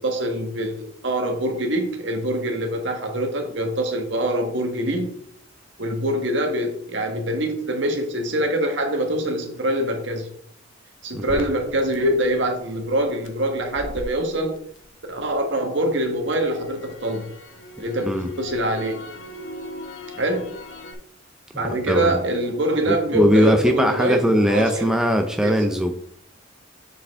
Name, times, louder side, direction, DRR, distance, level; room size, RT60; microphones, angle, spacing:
voice 1, 0.0-5.1 5.8-10.3 11.0-14.6 15.1-17.3 17.8-19.1 20.2-20.6 21.5-24.9 25.4-25.6, right 1 dB, 70° right, 4 dB, 1.4 m, -24 dB
voice 2, 11.1-11.4 18.0-18.3 21.7-22.1 22.9-25.9, equal, 5° right, 4 dB, 0.5 m, -20 dB
Crackle, 11.3-15.4 15.8-20.9, left 2 dB, 75° left, 0.8 m, -39 dB
7.1 x 4.5 x 3.6 m, 0.62 s
head